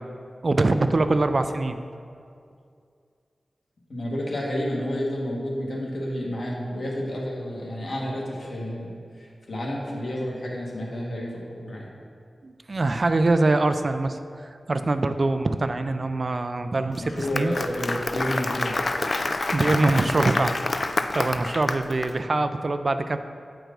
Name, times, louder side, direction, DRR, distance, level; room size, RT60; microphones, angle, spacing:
voice 1, 0.4-1.8 12.4-17.5 19.5-23.2, right 2 dB, 45° right, 9 dB, 0.3 m, -24 dB
voice 2, 3.9-11.3 11.6-11.9 17.0-19.0, equal, 65° left, -3 dB, 1.4 m, -30 dB
Applause, 17.0-22.1, left 2 dB, 40° left, 0.3 m, -28 dB
7.8 x 4.6 x 5.1 m, 2.3 s
wide cardioid pair, 115°, 0 cm